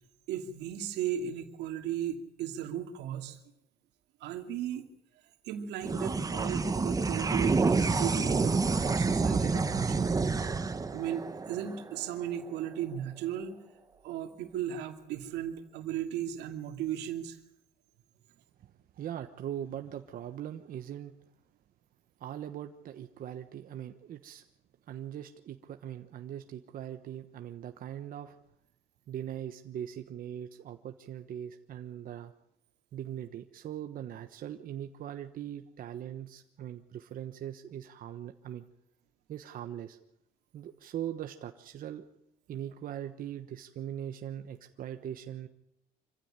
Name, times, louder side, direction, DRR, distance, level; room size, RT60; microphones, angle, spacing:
voice 1, 0.3-3.4 4.2-4.8 5.4-10.1 10.9-13.6 14.0-17.4, right 10 dB, 85° right, 5 dB, 2.5 m, -36 dB
sound 1, 5.8-12.5, right 4 dB, 20° right, 1.2 m, -28 dB
voice 2, 18.6-21.1 22.2-24.4 24.9-28.4 29.1-32.3 32.9-38.6 39.3-40.0 40.5-42.0 42.5-45.5, right 10 dB, 55° right, 6 dB, 1.2 m, -41 dB
25.5 x 15.0 x 9.0 m, 0.85 s
cardioid pair, 110°, 17 cm